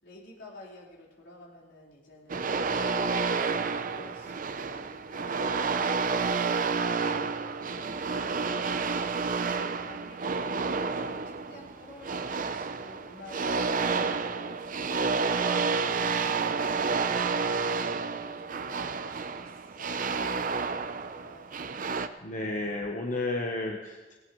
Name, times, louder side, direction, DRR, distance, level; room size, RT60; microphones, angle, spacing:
voice 1, 0.0-7.1 7.6-9.0 9.4-16.3 16.7-21.5, left 1 dB, 75° left, -4 dB, 4.4 m, -51 dB
sound 1, 2.3-22.1, right 4 dB, 45° right, 0.6 m, -30 dB
voice 2, 22.2-24.1, left 2 dB, 45° left, 1 dB, 1.2 m, -32 dB
19.0 x 17.0 x 3.2 m, 1.2 s
head